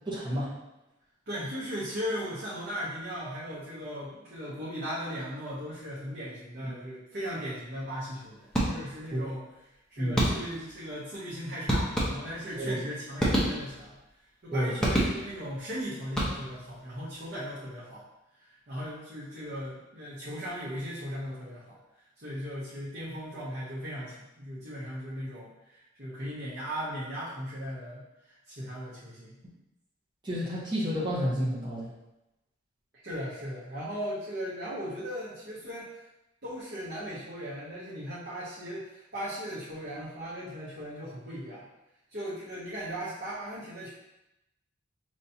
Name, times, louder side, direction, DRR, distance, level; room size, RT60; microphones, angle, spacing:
voice 1, 0.1-0.5 9.1-9.2 10.0-10.2 12.6-12.8 14.5-14.7 30.2-31.9, equal, 25° right, -8 dB, 1.0 m, -30 dB
voice 2, 1.3-14.0 14.4-18.0 18.3-21.8 22.2-29.4 33.0-36.0 36.4-41.6 42.1-43.9, equal, 55° right, -9 dB, 1.0 m, -38 dB
sound 1, 8.5-9.1 10.2-10.7 11.7-12.5 13.2-14.0 14.8-15.5 16.0-16.7, equal, 5° left, 0.9 m, -28 dB
5.3 x 3.1 x 2.8 m, 0.94 s
head